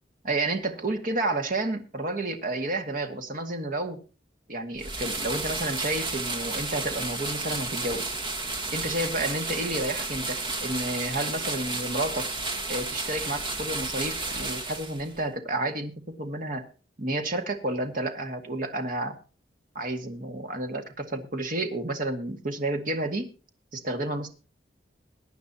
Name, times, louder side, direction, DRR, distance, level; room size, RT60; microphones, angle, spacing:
voice 1, 0.2-4.0 4.5-8.1 8.7-12.3 12.7-16.6 17.0-19.2 19.8-23.3 23.7-24.3, right 2 dB, 50° right, 5 dB, 2.0 m, -30 dB
sound 1, 4.8-15.2, right 3 dB, 30° right, 1.7 m, -32 dB
22.0 x 9.4 x 2.9 m, 0.35 s
head